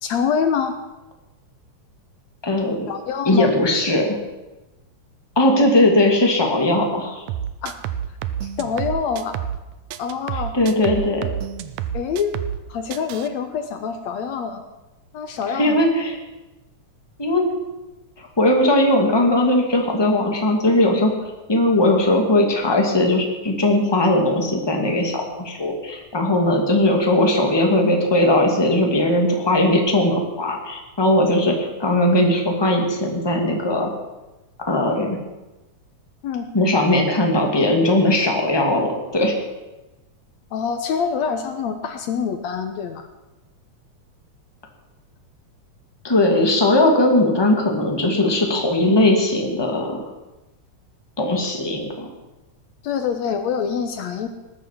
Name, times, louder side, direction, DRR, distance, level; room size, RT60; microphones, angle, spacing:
voice 1, 0.0-0.7 2.9-3.5 5.6-5.7 7.6-7.7 8.4-9.4 10.0-10.5 11.9-12.3 12.7-14.6 15.1-15.8 36.2-36.5 40.5-43.1 52.8-54.3, left 6 dB, 70° left, 7 dB, 2.2 m, -25 dB
voice 2, 2.4-2.9 3.3-4.2 5.4-7.2 10.5-11.3 15.6-16.2 17.2-17.4 18.2-33.9 34.6-35.2 36.5-39.4 46.0-50.0 51.2-52.1, left 1 dB, 10° left, 2 dB, 2.0 m, -19 dB
sound 1, 7.3-9.6 9.9-12.6 12.9-13.3, right 10 dB, 80° right, 2.1 m, -29 dB
19.0 x 9.3 x 7.4 m, 1.1 s
omnidirectional pair, 3.4 m